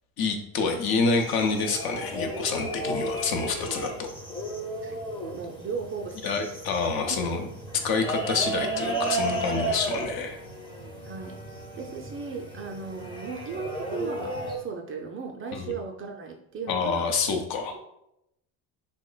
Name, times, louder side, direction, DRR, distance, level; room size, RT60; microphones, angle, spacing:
voice 1, 0.2-4.1 6.2-7.5 7.8-10.4 15.5-15.7 16.7-17.8, left 4 dB, 55° left, 4 dB, 0.7 m, -27 dB
sound 1, 1.1-14.6, right 1 dB, 10° left, 0.6 m, -34 dB
voice 2, 5.3-6.6 7.1-7.4 11.0-11.4 11.8-17.1, right 5 dB, 30° right, 1 dB, 0.4 m, -36 dB
2.9 x 2.1 x 3.8 m, 0.81 s
supercardioid pair, 100°, 44 cm